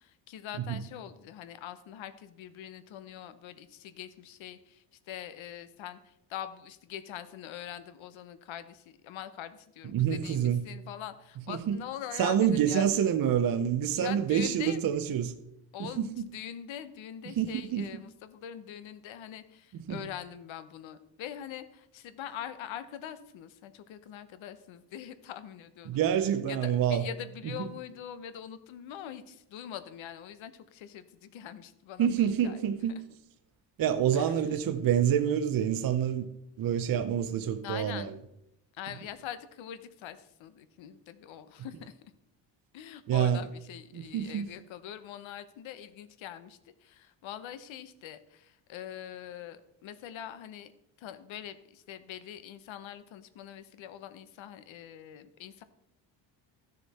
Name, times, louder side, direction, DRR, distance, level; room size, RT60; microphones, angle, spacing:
voice 1, 0.0-12.9 14.0-14.8 15.7-26.1 26.5-32.7 34.1-34.3 37.6-38.2 38.7-42.0 42.7-50.7 51.0-55.6, left 10 dB, 75° left, 0.9 m, -43 dB
voice 2, 9.9-10.6 11.5-11.8 12.2-15.3 15.8-16.1 17.3-17.9 19.9-20.0 25.9-27.1 27.6-27.7 32.0-33.0 33.8-36.3 36.6-38.1 43.1-43.4 43.9-44.5, right 9 dB, 45° right, 0.7 m, -27 dB
13.5 x 6.6 x 4.2 m
cardioid pair, 130°, 47 cm